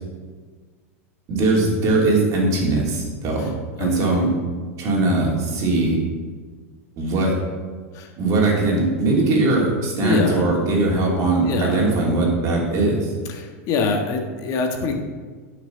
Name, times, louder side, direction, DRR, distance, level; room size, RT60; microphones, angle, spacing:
voice 1, 1.3-3.5 3.8-4.3 4.8-6.0 7.0-7.4 8.2-13.1, right 2 dB, 45° right, -2 dB, 3.2 m, -20 dB
voice 2, 3.8-4.2 7.9-8.1 10.0-10.4 11.5-11.9 13.3-14.9, left 4 dB, 45° left, 3 dB, 1.6 m, -24 dB
12.0 x 6.2 x 4.1 m, 1.5 s
hypercardioid pair, 105°, 8 cm